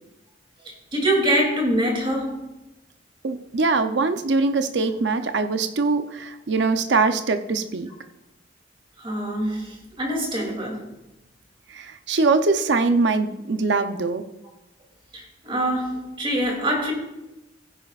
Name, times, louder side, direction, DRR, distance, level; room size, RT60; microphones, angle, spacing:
voice 1, 0.6-2.4 9.0-10.8 15.1-16.9, right 1 dB, 30° right, 2.9 m, -24 dB
voice 2, 3.2-7.9 11.7-14.2, right 3 dB, 75° right, 0.7 m, -22 dB
16.0 x 10.0 x 2.5 m
head